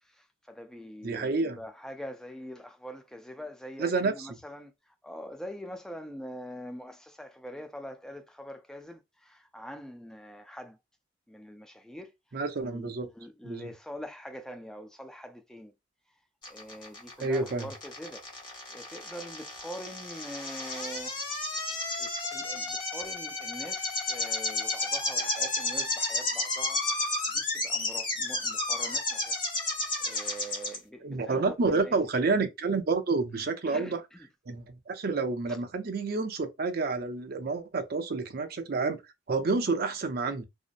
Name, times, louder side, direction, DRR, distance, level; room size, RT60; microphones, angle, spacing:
voice 1, 0.0-10.8 11.3-15.7 16.5-21.2 22.0-29.4 30.0-32.0 33.4-34.3 35.5-35.6, equal, 5° left, 0.3 m, -44 dB
voice 2, 1.0-1.6 3.8-4.1 12.3-13.1 13.4-13.7 17.2-17.7 25.2-25.5 31.0-34.0 34.5-39.0 39.3-40.4, right 3 dB, 55° right, 0.5 m, -29 dB
sound 1, 16.4-30.8, left 2 dB, 25° left, 0.8 m, -32 dB
2.7 x 2.0 x 2.4 m
head